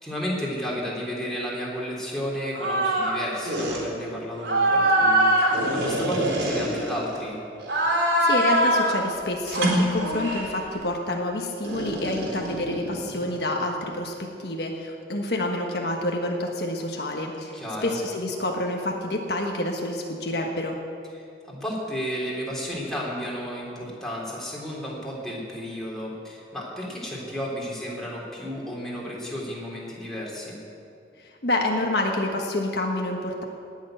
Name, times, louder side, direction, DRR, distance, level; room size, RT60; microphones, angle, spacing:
voice 1, 0.0-7.4 17.5-18.0 21.5-30.6, equal, 5° left, -5 dB, 3.5 m, -32 dB
sound 1, 2.5-3.2 3.4-3.8 4.4-7.2 7.6-9.0 9.5-10.5 11.6-13.4, right 1 dB, 80° right, 4.1 m, -23 dB
voice 2, 8.2-17.6 17.8-20.8 31.2-33.4, left 1 dB, 60° left, 1 dB, 1.4 m, -28 dB
19.0 x 7.3 x 9.1 m, 2.5 s
head